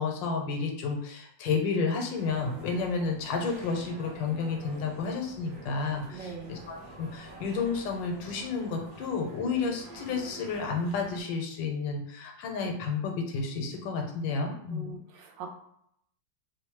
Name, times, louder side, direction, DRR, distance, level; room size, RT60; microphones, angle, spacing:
voice 1, 0.0-15.0, left 4 dB, 90° left, 2 dB, 1.3 m, -31 dB
sound 1, 2.1-11.2, right 2 dB, 60° right, 1.4 m, -47 dB
voice 2, 6.1-6.6 14.7-15.5, right 6 dB, 85° right, 2 dB, 1.3 m, -42 dB
3.3 x 2.0 x 2.9 m, 0.72 s
omnidirectional pair, 2.0 m